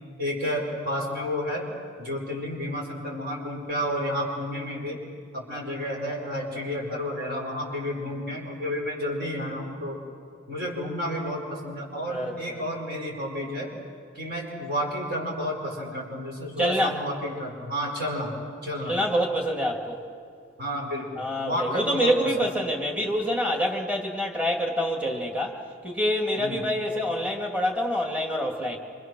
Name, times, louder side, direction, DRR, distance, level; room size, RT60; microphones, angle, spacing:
voice 1, 0.2-1.7 2.0-5.0 5.3-10.0 10.5-13.7 14.1-18.4 18.6-19.0 20.6-22.5 26.4-26.6, equal, 50° right, -2 dB, 5.0 m, -31 dB
voice 2, 12.1-12.6 16.6-17.0 18.9-20.1 21.2-28.8, equal, 5° right, 0 dB, 2.4 m, -26 dB
27.5 x 26.0 x 6.3 m, 2.2 s
head